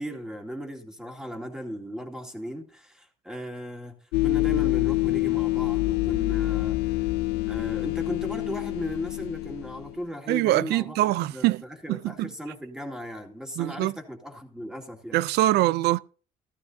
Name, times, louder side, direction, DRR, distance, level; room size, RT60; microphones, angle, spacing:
voice 1, 0.0-6.9 7.5-11.0 11.3-15.2, equal, 5° right, 2.2 m, -37 dB
sound 1, 4.1-10.0, left 21 dB, 90° left, 0.4 m, -26 dB
voice 2, 10.3-11.6 11.9-12.3 13.6-13.9 15.1-16.0, right 15 dB, 75° right, 0.5 m, -23 dB
13.5 x 13.5 x 2.7 m
cardioid pair, 110°, 17 cm